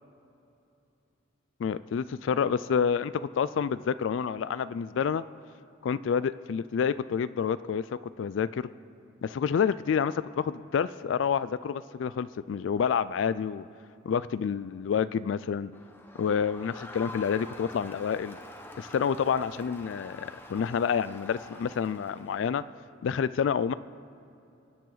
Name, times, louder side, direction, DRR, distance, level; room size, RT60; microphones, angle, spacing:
voice 1, 1.6-5.2 5.8-8.7 9.2-13.6 14.0-15.7 16.2-18.4 18.8-22.6 23.0-23.7, left 7 dB, 75° left, 15 dB, 0.3 m, -28 dB
Crowd, 15.7-22.6, left 1 dB, 10° left, 1.0 m, -46 dB
23.5 x 9.4 x 4.0 m, 2.7 s
head